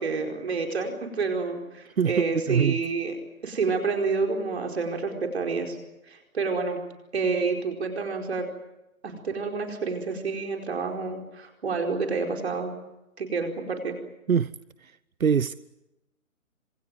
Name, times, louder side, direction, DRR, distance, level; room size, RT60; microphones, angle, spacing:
voice 1, 0.0-3.2 3.4-5.8 6.1-6.8 7.1-8.4 9.0-12.7 13.2-14.0, right 4 dB, 50° right, 4.7 m, -29 dB
voice 2, 2.0-2.8 14.3-14.5 15.2-15.5, right 7 dB, 80° right, 0.9 m, -23 dB
26.5 x 25.5 x 7.6 m
hypercardioid pair, 160°, 41 cm